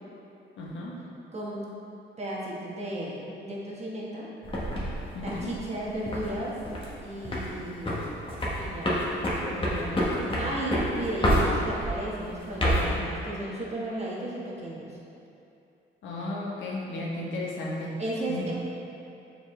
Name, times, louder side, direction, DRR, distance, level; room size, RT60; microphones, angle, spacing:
voice 1, 0.6-1.0 5.1-5.5 16.0-18.0 18.3-18.5, left 2 dB, 75° left, -4 dB, 1.2 m, -34 dB
voice 2, 1.3-1.7 2.2-4.3 5.2-6.5 7.0-8.2 8.6-15.0 18.0-18.5, right 1 dB, 35° right, -5 dB, 1.4 m, -34 dB
sound 1, 4.4-6.3 6.7-7.0 7.2-7.6 7.9-12.0 12.4-12.9, equal, 25° left, 1.3 m, -27 dB
6.5 x 4.7 x 3.2 m, 2.7 s
cardioid pair, 90°, 20 cm